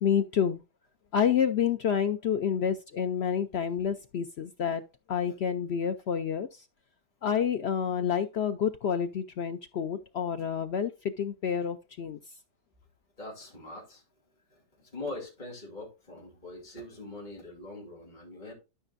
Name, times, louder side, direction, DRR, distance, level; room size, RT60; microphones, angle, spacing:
voice 1, 0.0-0.6 1.1-4.8 5.1-6.6 7.2-10.9 11.2-12.2, left 8 dB, 70° left, 0.6 m, -28 dB
voice 2, 13.2-14.0 14.5-18.5, left 2 dB, 25° left, 2.9 m, -42 dB
12.0 x 5.9 x 2.6 m
omnidirectional pair, 1.7 m